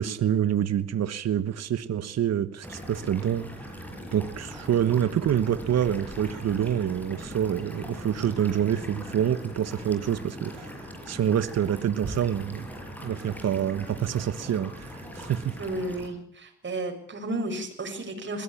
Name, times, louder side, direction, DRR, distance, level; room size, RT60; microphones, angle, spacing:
voice 1, 0.0-3.5 4.1-12.7 13.0-15.6, right 9 dB, 60° right, 1.4 m, -27 dB
sound 1, 2.6-16.1, equal, 5° left, 6.6 m, -40 dB
voice 2, 15.6-18.4, right 2 dB, 40° right, 7.1 m, -33 dB
21.5 x 17.5 x 8.6 m
cardioid pair, 90°, 30 cm